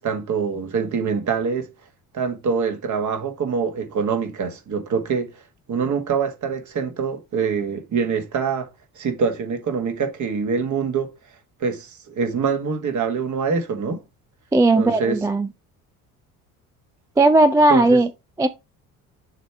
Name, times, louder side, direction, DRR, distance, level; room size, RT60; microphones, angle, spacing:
voice 1, 0.0-1.7 2.1-5.4 5.7-8.7 9.0-11.1 11.6-14.0 14.8-15.2 17.7-18.0, right 5 dB, 40° right, 1.7 m, -24 dB
voice 2, 14.5-15.5 17.2-18.1 18.4-18.5, right 2 dB, 10° right, 0.4 m, -16 dB
6.7 x 3.3 x 4.6 m
figure-of-eight pair, 55°, 45 cm